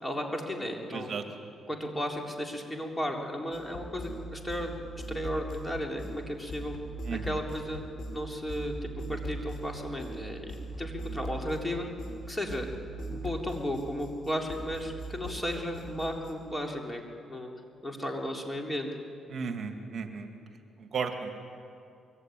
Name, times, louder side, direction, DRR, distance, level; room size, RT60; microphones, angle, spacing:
voice 1, 0.0-1.1 1.7-4.8 5.1-6.8 7.1-7.8 8.1-11.9 12.3-12.7 13.1-17.0 17.3-17.5 17.8-18.9, equal, 15° left, 1 dB, 3.8 m, -34 dB
voice 2, 0.9-1.2 7.0-7.4 19.3-20.3 20.8-21.4, right 5 dB, 50° right, 5 dB, 2.3 m, -35 dB
sound 1, 3.5-16.3, right 1 dB, 70° left, 5.2 m, -40 dB
24.5 x 23.0 x 9.3 m, 2.6 s
cardioid pair, 90°, 0 cm